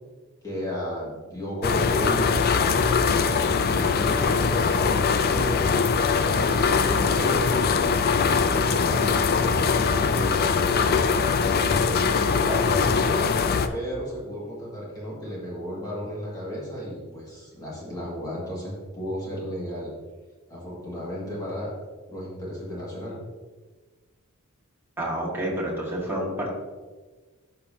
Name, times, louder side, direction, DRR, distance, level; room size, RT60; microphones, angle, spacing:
voice 1, 0.4-2.9 3.1-5.6 6.2-7.6 8.6-9.3 9.9-11.0 11.5-12.8 13.7-19.9 20.5-21.7 22.1-23.2, equal, 15° left, -5 dB, 2.0 m, -34 dB
sound 1, 1.6-13.7, left 5 dB, 45° left, 0.5 m, -22 dB
voice 2, 25.0-26.5, right 1 dB, 10° right, -4 dB, 1.8 m, -29 dB
12.5 x 5.5 x 2.8 m, 1.3 s
head